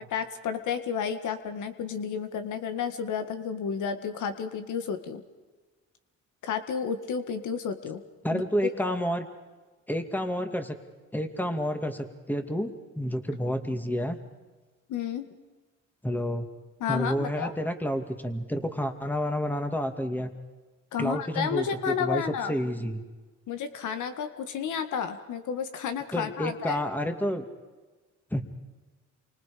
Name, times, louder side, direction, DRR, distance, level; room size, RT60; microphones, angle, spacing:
voice 1, 0.1-5.2 6.4-8.0 8.3-9.0 14.9-15.3 16.8-17.5 20.9-22.5 23.5-26.8, left 7 dB, 80° left, 9 dB, 1.9 m, -31 dB
voice 2, 8.2-9.3 9.9-10.8 11.1-12.7 13.0-14.2 16.0-16.5 16.9-20.3 21.0-23.0 26.1-27.5 28.3-28.4, equal, 5° left, 6 dB, 2.4 m, -29 dB
29.0 x 25.0 x 5.2 m, 1.3 s
cardioid pair, 90°, 30 cm